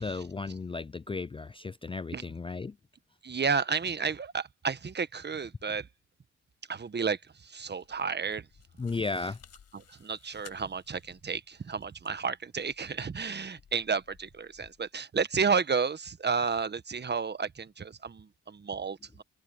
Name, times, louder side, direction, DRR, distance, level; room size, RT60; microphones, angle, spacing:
voice 1, 0.0-2.8 8.8-9.4, left 4 dB, 20° left, 0.5 m, -35 dB
voice 2, 3.2-5.9 6.7-8.4 9.9-19.2, right 5 dB, 35° right, 1.4 m, -31 dB
sound 1, 7.6-14.9, left 7 dB, 60° left, 7.5 m, -59 dB
open air
cardioid pair, 75°, 30 cm